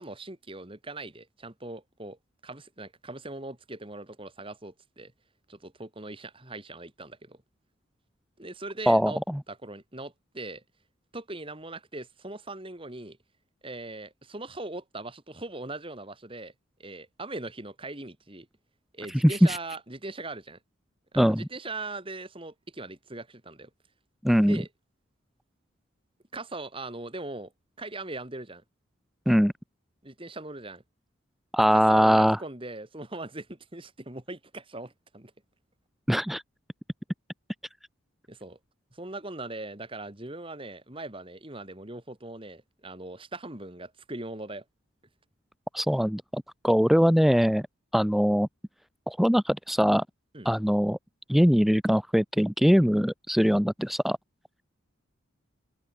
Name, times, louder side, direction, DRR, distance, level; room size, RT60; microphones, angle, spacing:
voice 1, 0.0-2.2 2.4-5.1 5.5-7.4 8.4-9.2 9.5-10.6 11.1-13.2 13.6-16.5 16.8-18.5 18.9-20.6 21.1-23.7 24.4-24.7 26.3-27.5 27.8-28.6 30.0-30.8 31.7-35.3 38.3-38.6 38.9-44.6 50.3-50.5, right 2 dB, 25° right, 2.6 m, -40 dB
voice 2, 8.9-9.4 19.1-19.6 21.2-21.5 24.2-24.6 29.3-29.5 31.5-32.4 36.1-36.4 45.7-47.7 47.9-48.5 49.1-50.0 50.4-51.0 51.3-54.2, equal, ahead, 0.5 m, -22 dB
head